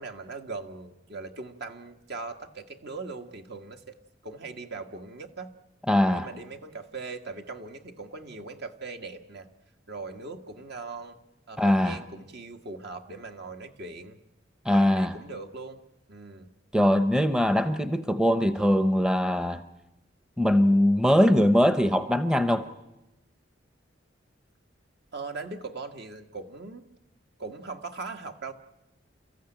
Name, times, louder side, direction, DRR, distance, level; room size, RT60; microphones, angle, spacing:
voice 1, 0.0-3.9 4.2-5.5 6.1-9.5 9.9-11.2 11.5-14.2 14.7-15.8 16.1-16.5 25.1-26.8 27.4-28.5, right 3 dB, 60° right, 1.6 m, -40 dB
voice 2, 5.9-6.3 11.6-12.0 14.6-15.1 16.7-19.6 20.4-22.7, equal, 5° right, 0.8 m, -22 dB
29.5 x 14.5 x 9.0 m
head